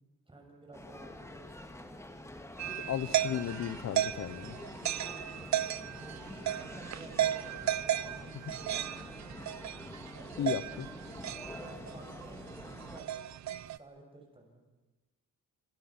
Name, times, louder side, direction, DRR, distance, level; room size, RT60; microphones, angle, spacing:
voice 1, 0.3-2.2 4.3-5.2 6.0-7.6 8.0-9.4 10.2-10.5 11.5-14.6, right 2 dB, 15° right, 1 dB, 7.0 m, -53 dB
sound 1, 0.7-13.0, left 1 dB, 10° left, 1.9 m, -47 dB
sound 2, 2.6-13.8, right 11 dB, 60° right, 0.8 m, -35 dB
voice 2, 2.9-4.5 10.4-10.9, left 10 dB, 60° left, 16 dB, 1.0 m, -35 dB
29.0 x 27.0 x 6.1 m, 1.1 s
wide cardioid pair, 155°, 31 cm